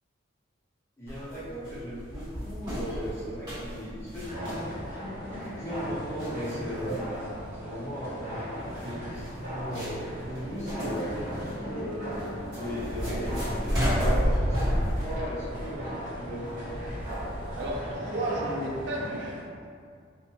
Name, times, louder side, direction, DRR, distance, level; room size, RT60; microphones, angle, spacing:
voice 1, 1.0-4.6 4.9-7.0 7.6-12.1 12.5-16.8, equal, 15° left, -10 dB, 0.7 m, -37 dB
sound 1, 1.1-17.8, equal, 20° right, 1.0 m, -32 dB
sound 2, 4.1-19.4, equal, 40° right, 1.1 m, -38 dB
sound 3, 10.5-15.6, equal, 70° left, 0.7 m, -42 dB
voice 2, 17.6-19.4, right 1 dB, 60° right, -3 dB, 0.5 m, -32 dB
2.8 x 2.1 x 3.0 m, 2.2 s
head